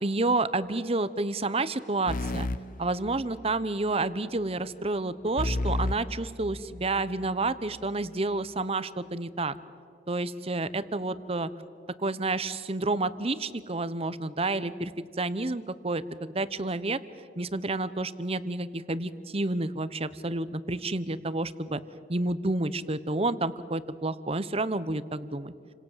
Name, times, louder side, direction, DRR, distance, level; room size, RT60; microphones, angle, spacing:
voice 1, 0.0-2.5 2.8-9.6 10.1-11.5 12.0-14.9 15.2-17.0 17.4-21.8 22.1-25.5, right 2 dB, 35° right, 14 dB, 1.0 m, -30 dB
sound 1, 2.1-3.7 5.4-7.1, left 1 dB, 50° left, 0.9 m, -32 dB
29.5 x 26.0 x 7.5 m, 2.3 s
head